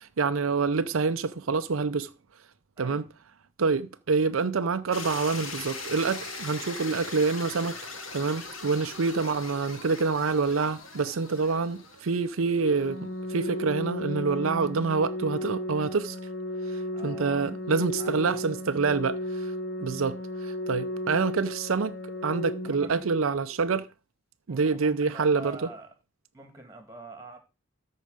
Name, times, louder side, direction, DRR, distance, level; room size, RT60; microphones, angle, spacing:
voice 1, 0.0-2.1 2.8-3.0 3.6-7.8 8.1-16.2 16.7-19.5 19.8-22.0 22.2-23.9 24.5-25.6, right 4 dB, 90° right, 0.6 m, -27 dB
voice 2, 2.8-3.1 16.9-17.5 18.0-18.4 22.6-23.0 24.5-25.9 26.3-27.4, right 2 dB, 15° right, 2.3 m, -45 dB
sound 1, 4.9-12.9, left 3 dB, 80° left, 2.3 m, -40 dB
Organ, 12.6-23.6, left 1 dB, 50° left, 1.6 m, -35 dB
13.5 x 4.8 x 5.0 m
head